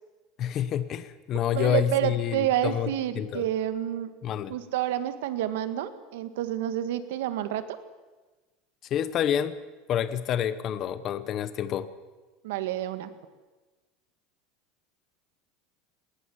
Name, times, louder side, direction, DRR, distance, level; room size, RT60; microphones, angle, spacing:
voice 1, 0.4-3.5 4.2-4.6 8.9-9.6 9.9-11.9, left 10 dB, 35° left, 13 dB, 0.9 m, -28 dB
voice 2, 1.5-4.1 4.5-7.8 12.4-13.1, right 12 dB, 80° right, 11 dB, 1.8 m, -29 dB
20.0 x 19.5 x 7.2 m, 1.2 s
supercardioid pair, 165°, 0 cm